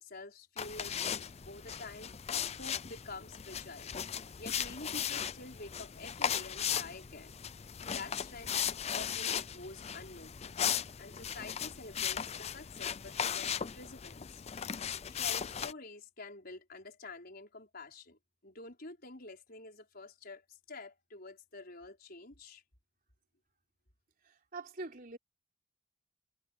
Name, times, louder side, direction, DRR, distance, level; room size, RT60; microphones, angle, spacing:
voice 1, 0.0-2.2 2.5-4.0 4.4-7.3 7.9-8.6 8.9-10.7 11.0-14.4 15.1-22.6, left 3 dB, 45° left, 5.2 m, -48 dB
sound 1, 0.6-15.7, left 8 dB, 30° left, 0.5 m, -37 dB
voice 2, 24.2-25.2, right 3 dB, 45° right, 3.5 m, -44 dB
head